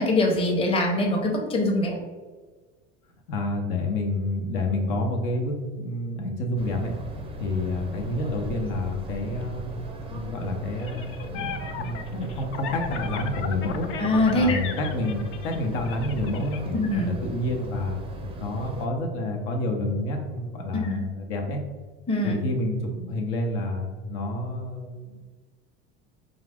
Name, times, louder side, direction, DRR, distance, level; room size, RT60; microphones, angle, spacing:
voice 1, 0.0-1.9 14.0-14.6 16.7-17.1 20.7-21.0 22.1-22.4, left 1 dB, 15° left, 0 dB, 0.7 m, -23 dB
voice 2, 3.3-7.0 7.4-9.8 10.1-13.9 14.3-18.0 18.4-21.6 22.2-25.2, left 2 dB, 75° left, 2 dB, 0.9 m, -29 dB
sound 1, 6.6-18.9, right 1 dB, 15° right, 0.5 m, -38 dB
sound 2, 10.8-16.6, left 7 dB, 40° left, 0.4 m, -36 dB
4.6 x 2.5 x 3.4 m, 1.3 s
supercardioid pair, 105°, 33 cm